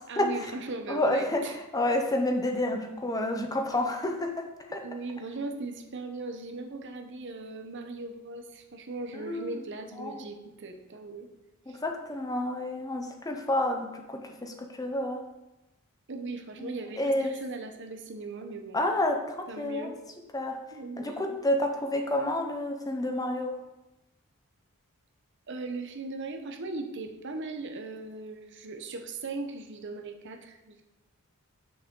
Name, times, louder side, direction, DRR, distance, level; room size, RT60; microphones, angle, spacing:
voice 1, 0.1-1.6 4.8-11.3 11.7-11.8 16.1-18.8 19.5-20.0 20.7-21.4 25.5-30.8, right 3 dB, 55° right, 5 dB, 0.8 m, -38 dB
voice 2, 0.9-4.8 9.1-9.5 10.0-10.2 11.7-15.2 16.6-17.3 18.7-19.9 20.3-20.6 21.0-23.5, left 1 dB, 15° left, 4 dB, 0.7 m, -29 dB
8.3 x 6.3 x 3.7 m, 0.97 s
head